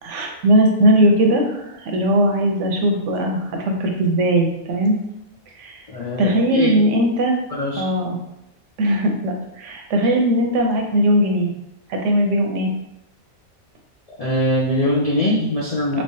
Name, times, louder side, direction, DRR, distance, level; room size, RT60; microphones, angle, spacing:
voice 1, 0.0-5.0 5.6-5.8 6.2-7.4 7.8-8.2 8.8-11.5 11.9-12.7 15.9-16.0, equal, 70° right, 2 dB, 0.9 m, -19 dB
voice 2, 5.9-6.8 7.5-7.8 14.2-16.0, left 1 dB, 50° left, -7 dB, 0.4 m, -22 dB
3.3 x 3.2 x 2.7 m, 0.84 s
omnidirectional pair, 1.4 m